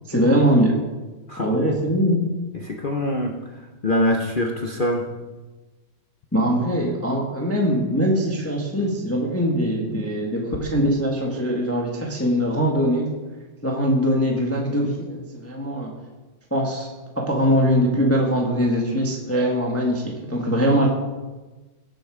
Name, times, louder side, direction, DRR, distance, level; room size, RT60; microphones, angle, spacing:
voice 1, 0.1-0.8 1.4-2.3 6.3-13.1 13.6-15.9 16.5-16.9 17.1-20.9, equal, 5° left, -1 dB, 1.5 m, -22 dB
voice 2, 1.3-1.8 2.5-3.3 3.8-5.0, left 1 dB, 75° left, 2 dB, 0.4 m, -24 dB
17.5 x 7.7 x 5.0 m, 1.2 s
omnidirectional pair, 2.4 m